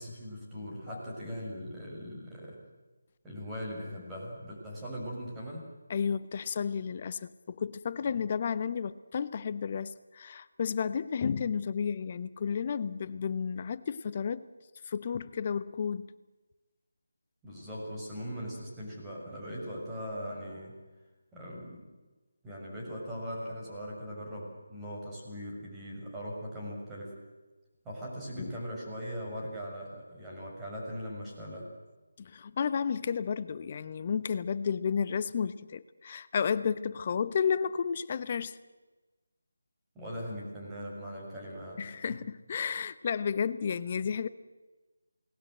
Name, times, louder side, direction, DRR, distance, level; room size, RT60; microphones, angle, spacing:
voice 1, 0.0-2.6 3.2-5.7 17.4-20.8 21.3-21.9 22.4-27.2 27.8-31.7 40.0-42.2, equal, 10° right, -4 dB, 6.9 m, -40 dB
voice 2, 5.9-14.5 14.9-16.1 28.4-28.5 32.2-38.6 41.8-44.3, left 6 dB, 30° left, 15 dB, 1.0 m, -32 dB
28.5 x 19.5 x 7.9 m, 1.2 s
figure-of-eight pair, 160°, 0 cm